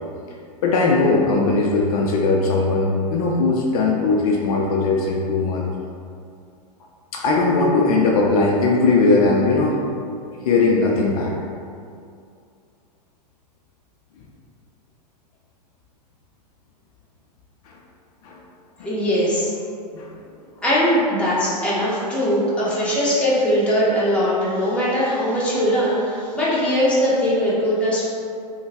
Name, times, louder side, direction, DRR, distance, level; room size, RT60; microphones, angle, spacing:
voice 1, 0.6-5.7 7.1-9.8 10.4-11.3 17.7-17.8 18.2-18.4 18.8-18.9 19.9-20.1, left 3 dB, 60° left, -2 dB, 0.5 m, -19 dB
voice 2, 18.8-19.5 20.6-28.1, equal, 5° left, -9 dB, 0.9 m, -20 dB
3.0 x 2.3 x 3.4 m, 2.3 s
hypercardioid pair, 110°, 21 cm